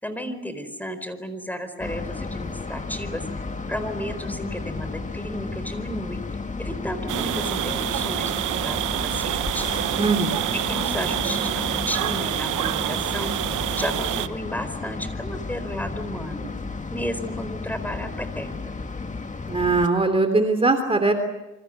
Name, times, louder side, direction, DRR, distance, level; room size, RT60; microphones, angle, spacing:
voice 1, 0.0-3.2 3.7-6.2 6.6-9.7 10.5-13.3 13.7-16.5 16.9-18.7, equal, 5° left, 10 dB, 4.5 m, -33 dB
sound 1, 1.8-19.9, left 3 dB, 25° left, 2.0 m, -33 dB
sound 2, 7.1-14.3, right 13 dB, 85° right, 1.1 m, -27 dB
voice 2, 10.0-10.4 19.5-21.1, right 3 dB, 20° right, 7 dB, 3.2 m, -21 dB
27.5 x 26.0 x 6.7 m, 0.98 s
cardioid pair, 90°, 30 cm